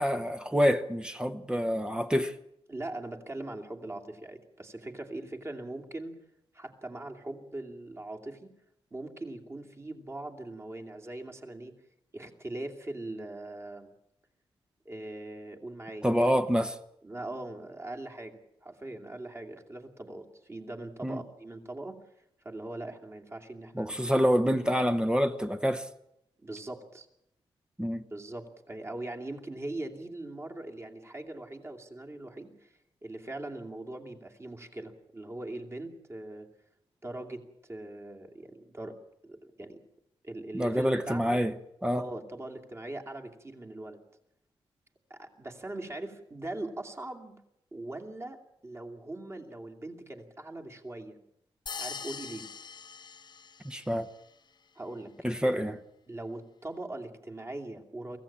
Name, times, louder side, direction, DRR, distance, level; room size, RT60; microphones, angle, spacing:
voice 1, 0.0-2.3 16.0-16.8 21.0-21.2 23.7-25.9 27.8-28.0 40.5-41.5 41.8-42.0 53.6-54.1 55.2-55.8, equal, 10° right, 1.0 m, -27 dB
voice 2, 2.7-6.1 6.5-8.5 8.9-11.7 12.1-13.9 14.8-16.1 17.0-22.0 22.4-23.9 26.4-27.1 28.1-36.5 37.0-39.0 39.2-39.8 40.2-41.4 41.9-44.0 45.1-47.4 47.7-48.4 48.6-51.2 51.8-52.5 54.8-55.1 55.4-55.5 56.1-58.2, right 2 dB, 25° right, 2.7 m, -41 dB
sound 1, 51.7-53.9, left 6 dB, 45° left, 0.9 m, -42 dB
24.0 x 16.0 x 8.8 m
wide cardioid pair, 130°, 10 cm